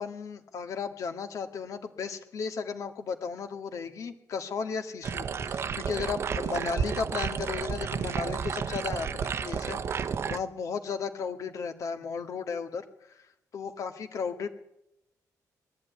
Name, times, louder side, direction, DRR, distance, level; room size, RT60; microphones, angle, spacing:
voice 1, 0.0-13.3 13.5-14.5, left 5 dB, 55° left, 8 dB, 1.9 m, -35 dB
sound 1, 5.0-10.4, right 6 dB, 40° right, 0.8 m, -31 dB
21.0 x 14.0 x 9.5 m, 0.84 s
wide cardioid pair, 165°, 6 cm